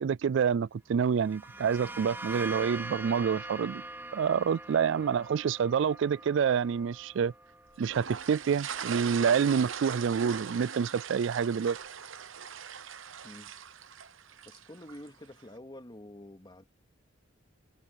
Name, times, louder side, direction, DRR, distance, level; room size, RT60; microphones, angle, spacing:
voice 1, 0.0-3.8 4.1-7.3 7.8-11.8, right 7 dB, 65° right, 0.3 m, -27 dB
sound 1, 1.1-8.7, right 2 dB, 10° right, 3.3 m, -43 dB
sound 2, 7.8-15.1, right 7 dB, 85° right, 1.0 m, -40 dB
voice 2, 13.2-13.5 14.4-16.6, left 1 dB, 25° left, 2.4 m, -48 dB
head